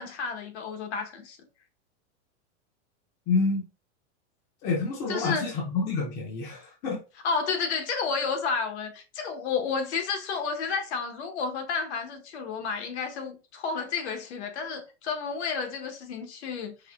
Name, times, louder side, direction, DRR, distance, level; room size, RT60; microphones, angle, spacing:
voice 1, 0.0-1.4 5.1-5.5 7.2-16.9, left 5 dB, 65° left, 1.0 m, -31 dB
voice 2, 3.3-3.7 4.6-7.0, left 4 dB, 20° left, 0.6 m, -28 dB
4.8 x 3.4 x 2.3 m
supercardioid pair, 165°, 36 cm